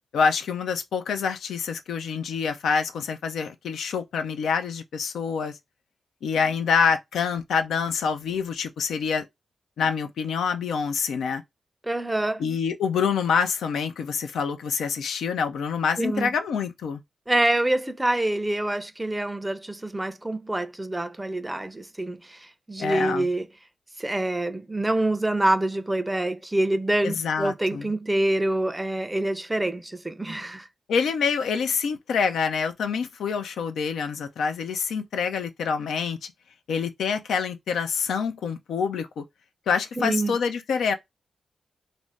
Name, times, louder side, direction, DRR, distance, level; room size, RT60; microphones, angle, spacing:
voice 1, 0.1-5.5 6.2-9.3 9.8-11.4 12.4-17.0 22.8-23.3 27.0-27.9 30.9-36.2 36.7-39.2 39.7-40.9, left 6 dB, 85° left, 0.4 m, -26 dB
voice 2, 11.8-12.4 16.0-16.3 17.3-22.4 22.7-23.5 24.0-30.7 40.0-40.4, right 1 dB, 20° right, 0.5 m, -26 dB
2.5 x 2.1 x 3.3 m
supercardioid pair, 40°, 0 cm